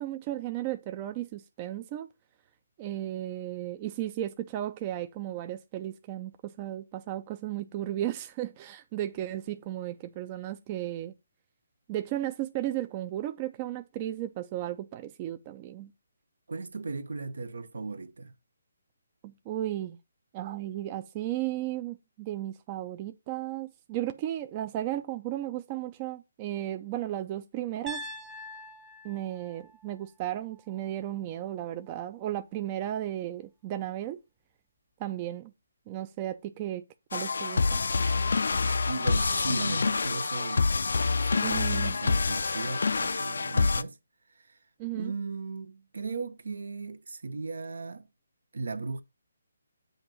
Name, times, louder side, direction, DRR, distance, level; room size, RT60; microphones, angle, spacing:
voice 1, 0.0-2.1 2.8-11.1 11.9-15.9 19.2-20.0 20.3-28.0 29.0-34.2 35.0-35.5 35.9-36.8 37.1-37.8 41.4-41.9 44.8-45.1, right 13 dB, 25° right, 0.4 m, -34 dB
voice 2, 16.5-18.3 38.6-40.8 41.2-44.0 44.3-44.6 44.9-48.1 48.5-49.0, right 4 dB, 75° right, 0.7 m, -37 dB
Piano, 27.9-31.9, left 1 dB, 10° right, 0.8 m, -46 dB
sound 1, 37.1-43.8, left 4 dB, 70° left, 0.4 m, -27 dB
7.8 x 2.7 x 5.9 m
figure-of-eight pair, 150°, 0 cm